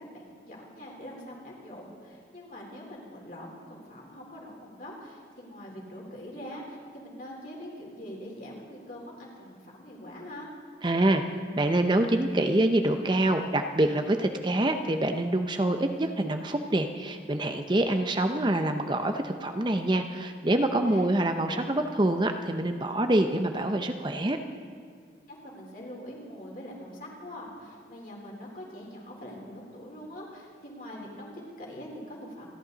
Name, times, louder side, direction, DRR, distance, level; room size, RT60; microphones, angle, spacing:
voice 1, 0.0-10.5 20.8-21.1 25.3-32.5, equal, 50° left, -2 dB, 3.7 m, -43 dB
voice 2, 10.8-11.2 11.6-24.4, right 1 dB, 25° right, 6 dB, 0.6 m, -26 dB
28.0 x 11.5 x 4.0 m, 2.2 s
head